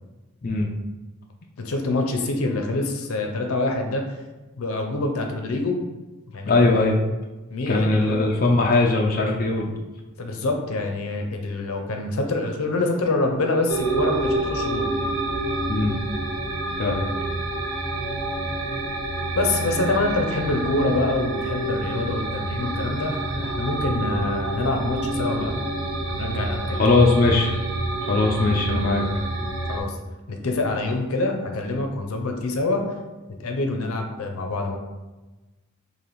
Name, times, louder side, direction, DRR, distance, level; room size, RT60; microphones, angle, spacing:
voice 1, 1.6-4.2 4.6-5.8 6.3-6.6 7.5-8.3 10.2-14.9 19.3-25.5 26.1-27.0 29.7-30.0 30.3-32.8 33.3-34.8, left 2 dB, 85° left, 3 dB, 0.6 m, -26 dB
voice 2, 6.4-7.0 7.7-9.8 15.7-16.0 16.8-17.1 26.7-27.6 28.0-29.1, left 3 dB, 45° left, 0 dB, 0.4 m, -20 dB
sound 1, 13.7-29.8, right 2 dB, 65° right, 0.6 m, -28 dB
3.3 x 2.5 x 4.0 m, 1.1 s
head